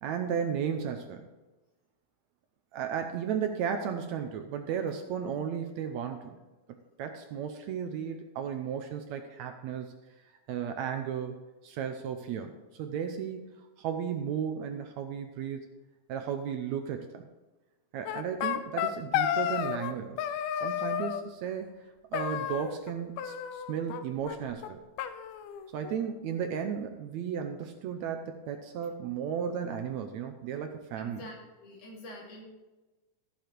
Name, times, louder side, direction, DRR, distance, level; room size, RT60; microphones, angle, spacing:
voice 1, 0.0-1.2 2.7-6.4 7.0-9.9 10.5-15.7 16.1-17.2 17.9-20.2 20.6-21.7 22.1-24.8 25.7-31.2, right 8 dB, 75° right, 6 dB, 1.8 m, -34 dB
sound 1, 18.1-19.9 20.2-21.2 22.1-22.9 23.2-24.0 24.3-24.4 24.6-24.7 25.0-26.0, left 10 dB, 85° left, 2.3 m, -32 dB
voice 2, 31.0-32.4, left 1 dB, 70° left, -3 dB, 4.0 m, -46 dB
14.5 x 6.8 x 4.5 m, 1.1 s
omnidirectional pair, 3.7 m